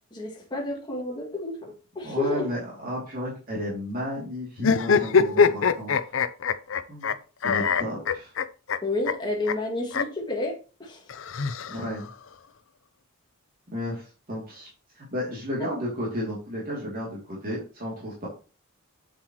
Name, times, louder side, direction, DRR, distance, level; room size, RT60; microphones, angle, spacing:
voice 1, 0.1-2.5 8.8-11.0, left 2 dB, 20° left, -1 dB, 2.2 m, -30 dB
voice 2, 2.0-6.2 6.9-7.1 7.4-8.3 11.7-12.1 13.7-14.7 15.0-18.3, equal, 40° right, -5 dB, 2.8 m, -33 dB
sound 1, 4.6-7.1 7.4-8.8 9.1-9.2 9.5-9.6 9.9-10.0 11.1-12.1, left 5 dB, 60° left, 0.6 m, -23 dB
8.0 x 7.5 x 3.0 m, 0.35 s
head